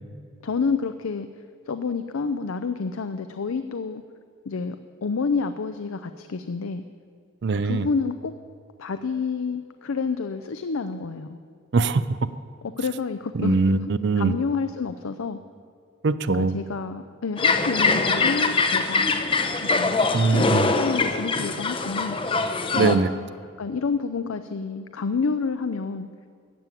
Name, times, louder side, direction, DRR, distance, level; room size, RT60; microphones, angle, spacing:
voice 1, 0.4-1.3 1.7-4.0 4.5-6.8 7.6-8.3 8.8-11.4 12.6-13.6 14.2-15.4 16.3-19.3 19.6-20.0 20.3-22.2 22.7-23.3 23.6-26.1, left 4 dB, 80° left, 10 dB, 0.5 m, -29 dB
voice 2, 7.4-7.9 11.7-12.2 13.3-14.3 16.0-16.5 20.1-20.7 22.8-23.1, right 4 dB, 55° right, 14 dB, 0.4 m, -22 dB
sound 1, 17.4-23.0, left 3 dB, 25° left, 0.6 m, -23 dB
14.0 x 7.4 x 9.0 m, 2.2 s
head